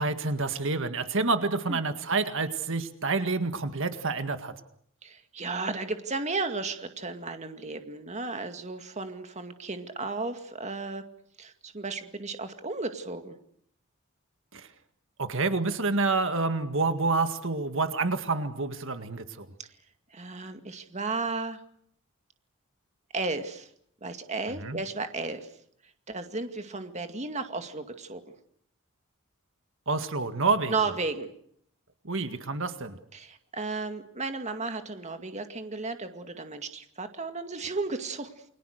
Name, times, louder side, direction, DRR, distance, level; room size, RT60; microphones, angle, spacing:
voice 1, 0.0-4.5 14.5-14.7 15.2-19.5 24.5-24.8 29.9-30.7 32.0-33.0, right 3 dB, 60° right, 8 dB, 1.9 m, -28 dB
voice 2, 5.0-11.0 11.4-13.4 20.1-21.6 23.1-23.7 24.0-25.5 26.1-28.2 30.7-31.3 33.1-38.3, right 3 dB, 30° right, 7 dB, 2.1 m, -34 dB
29.5 x 23.0 x 6.6 m, 0.68 s
head